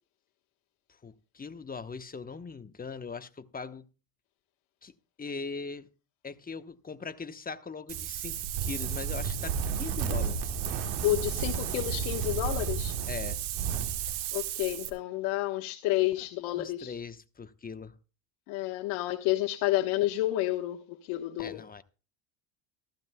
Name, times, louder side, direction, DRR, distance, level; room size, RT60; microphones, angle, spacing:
voice 1, 1.0-3.9 4.8-4.9 5.2-5.9 6.2-10.6 13.1-13.4 16.2-16.3 16.5-17.9 21.4-21.8, left 5 dB, 20° left, 1.0 m, -40 dB
Wind, 7.9-14.9, right 7 dB, 85° right, 2.2 m, -32 dB
voice 2, 11.0-12.9 14.3-16.9 18.5-21.6, left 16 dB, 85° left, 1.2 m, -30 dB
14.5 x 14.5 x 2.2 m
cardioid pair, 110°, 45 cm